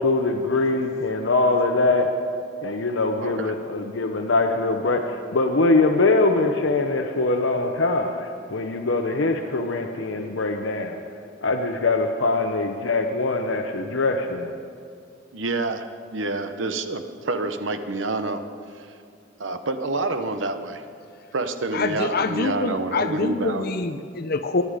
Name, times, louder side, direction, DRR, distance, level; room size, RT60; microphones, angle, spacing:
voice 1, 0.0-2.1 2.6-11.0 11.4-14.5, left 3 dB, 85° left, 4 dB, 0.8 m, -22 dB
voice 2, 3.2-3.5 15.3-15.8 16.1-18.4 18.7-18.9 19.4-20.8 21.3-23.6, right 2 dB, 85° right, 8 dB, 1.0 m, -27 dB
voice 3, 21.7-24.6, left 3 dB, 55° left, 9 dB, 0.6 m, -25 dB
23.5 x 9.9 x 5.0 m, 2.4 s
head